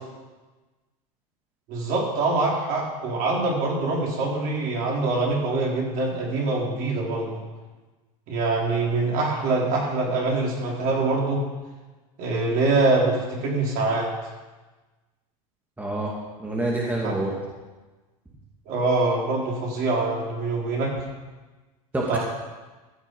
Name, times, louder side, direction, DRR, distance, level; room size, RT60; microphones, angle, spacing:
voice 1, 1.7-7.4 8.3-11.4 12.2-14.1 17.0-17.2 18.7-20.9 22.1-22.2, right 3 dB, 50° right, -3 dB, 4.3 m, -24 dB
voice 2, 15.8-16.1 16.4-17.3 21.9-22.2, right 2 dB, 10° right, -3 dB, 2.4 m, -26 dB
14.5 x 7.2 x 5.6 m, 1.2 s
hypercardioid pair, 100°, 19 cm